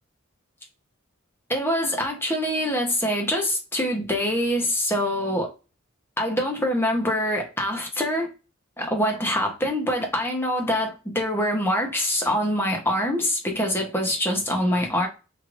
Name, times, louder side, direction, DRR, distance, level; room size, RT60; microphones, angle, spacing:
voice 1, 1.5-5.5 6.2-8.3 8.8-15.1, equal, 10° left, 0.9 m, -24 dB
3.3 x 3.2 x 2.5 m
head